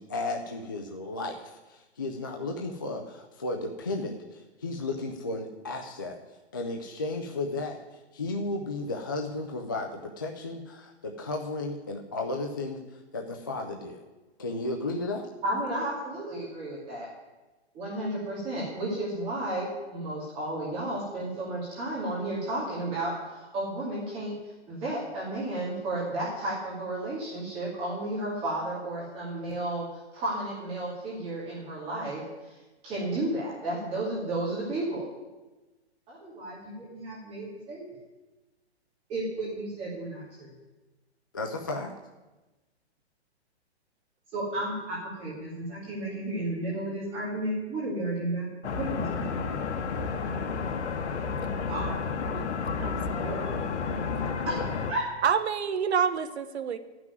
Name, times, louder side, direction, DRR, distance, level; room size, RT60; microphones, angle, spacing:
voice 1, 0.0-6.2 6.5-12.8 13.1-14.0 14.4-15.3 41.3-41.9, left 2 dB, 20° left, 2 dB, 0.3 m, -34 dB
voice 2, 15.4-17.1 17.7-24.3 24.7-32.6 32.8-35.1 36.1-37.8 39.1-40.5 44.3-48.5 48.8-49.3 51.7-52.0 52.7-53.5 54.4-54.5 54.9-55.0, right 1 dB, 15° right, -7 dB, 2.4 m, -33 dB
sound 1, 48.6-54.9, left 5 dB, 85° left, 1.5 m, -31 dB
voice 3, 49.8-50.7 51.5-52.0 52.3-52.5 52.8-53.7 55.2-56.8, right 7 dB, 75° right, 10 dB, 1.0 m, -30 dB
12.0 x 6.0 x 9.2 m, 1.1 s
hypercardioid pair, 165°, 33 cm